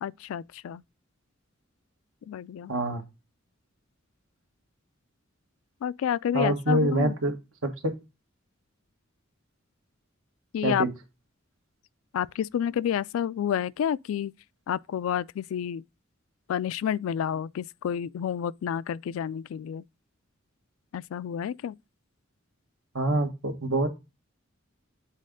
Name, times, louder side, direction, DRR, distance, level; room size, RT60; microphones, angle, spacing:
voice 1, 0.0-0.8 2.3-2.7 5.8-7.1 10.5-10.8 12.1-14.3 14.7-15.8 16.5-19.8 20.9-21.8, left 9 dB, 85° left, 0.3 m, -29 dB
voice 2, 2.7-3.0 6.3-7.3 7.6-7.9 10.6-10.9 22.9-23.9, right 1 dB, 90° right, 1.5 m, -25 dB
7.5 x 4.2 x 3.7 m
head